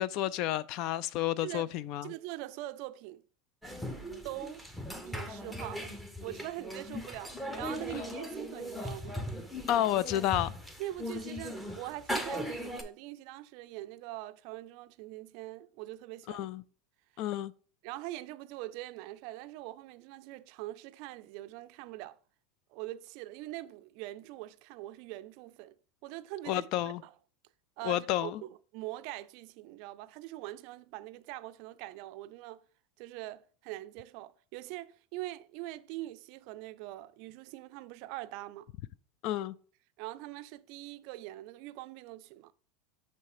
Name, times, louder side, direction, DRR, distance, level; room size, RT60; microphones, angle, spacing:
voice 1, 0.0-2.1 9.7-10.5 16.3-16.6 17.2-17.5 26.5-27.0 27.8-28.4 39.2-39.6, left 13 dB, 55° left, 0.3 m, -30 dB
voice 2, 1.4-1.7 2.0-3.2 4.2-4.6 5.0-5.9 6.2-9.2 10.8-16.5 17.8-22.2 22.7-25.8 26.0-26.7 27.0-27.1 27.8-32.6 33.0-38.7 40.0-42.5, right 16 dB, 60° right, 0.3 m, -43 dB
sound 1, 3.6-12.8, equal, 5° left, 0.8 m, -39 dB
6.7 x 3.2 x 4.8 m
supercardioid pair, 130°, 0 cm